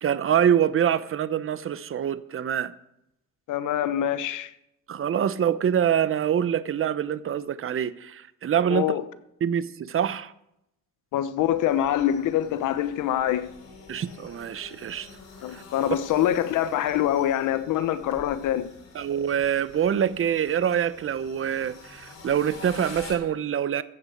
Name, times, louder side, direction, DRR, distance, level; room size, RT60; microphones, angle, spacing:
voice 1, 0.0-2.7 4.9-8.9 9.4-10.3 13.9-15.1 15.5-15.6 18.9-23.8, right 9 dB, 45° right, 0.8 m, -25 dB
voice 2, 3.5-4.5 8.7-9.0 11.1-13.5 15.4-18.7, left 11 dB, 85° left, 1.0 m, -25 dB
sound 1, 11.4-23.2, left 4 dB, 55° left, 4.5 m, -47 dB
14.5 x 8.0 x 6.5 m
cardioid pair, 90°, 30 cm